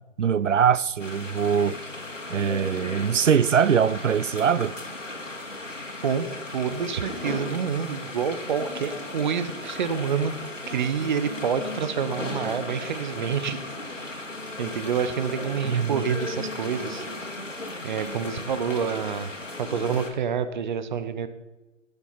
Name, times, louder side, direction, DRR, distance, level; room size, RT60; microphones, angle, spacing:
voice 1, 0.2-1.8 2.3-4.7 15.6-16.2, right 7 dB, 75° right, 0.5 m, -22 dB
sound 1, 1.0-20.1, left 2 dB, 75° left, 2.8 m, -36 dB
voice 2, 6.5-10.3 10.7-13.6 14.6-17.0 17.8-19.3 19.6-21.3, right 7 dB, 40° right, 0.9 m, -27 dB
17.0 x 7.2 x 5.7 m
figure-of-eight pair, 130°, 38 cm